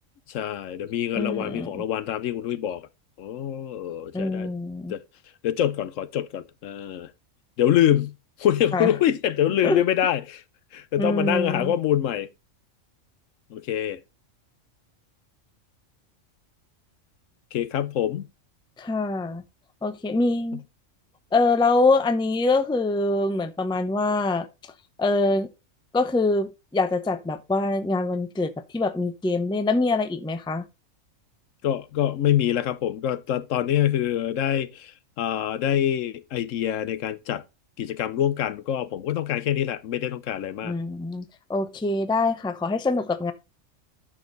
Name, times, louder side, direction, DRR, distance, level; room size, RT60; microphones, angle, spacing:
voice 1, 0.3-2.9 3.2-4.5 4.9-5.0 5.4-7.1 7.6-10.4 10.7-12.3 13.5-14.0 17.5-18.3 20.5-20.6 31.6-37.4 37.8-40.8, left 10 dB, 75° left, 1.0 m, -25 dB
voice 2, 1.2-1.7 4.1-4.9 8.7-8.9 9.6-9.8 11.0-11.7 18.8-19.4 19.8-20.6 21.3-24.5 25.0-25.5 25.9-30.6 40.6-41.2 41.5-43.3, left 3 dB, 5° left, 0.5 m, -24 dB
10.0 x 6.4 x 3.9 m
omnidirectional pair, 1.4 m